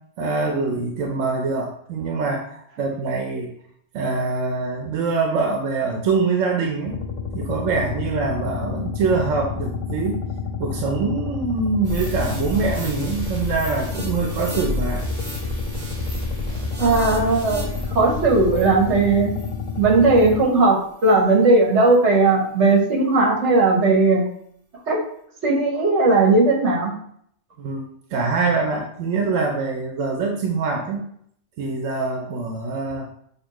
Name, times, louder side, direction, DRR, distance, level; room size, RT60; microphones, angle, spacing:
voice 1, 0.2-3.5 3.9-7.0 7.3-10.2 10.6-15.0 27.6-31.0 31.6-33.1, right 4 dB, 90° right, 2 dB, 1.0 m, -24 dB
sound 1, 6.9-20.4, left 5 dB, 75° left, 0.9 m, -30 dB
sound 2, 11.8-20.5 21.0-21.1, equal, 40° right, 1.5 m, -31 dB
voice 2, 16.8-19.3 19.8-24.2 24.9-25.0 25.4-26.9, right 3 dB, 65° right, 0 dB, 1.4 m, -17 dB
6.6 x 2.7 x 3.0 m, 0.67 s
omnidirectional pair, 1.3 m